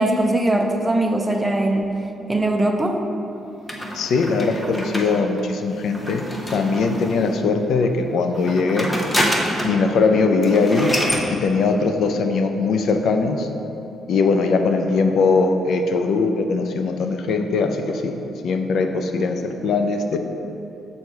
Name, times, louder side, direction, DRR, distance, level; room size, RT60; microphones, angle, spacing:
voice 1, 0.0-1.8 2.3-3.0, right 1 dB, 15° right, 3 dB, 0.6 m, -20 dB
sound 1, 3.7-7.3 8.3-9.8 10.1-10.2 10.4-11.3, equal, 15° left, 0.8 m, -27 dB
voice 2, 3.9-6.2 6.5-8.9 9.6-11.0 11.3-13.5 14.1-20.2, left 4 dB, 70° left, 6 dB, 0.5 m, -20 dB
6.6 x 4.1 x 4.6 m, 2.9 s
cardioid pair, 90°, 0 cm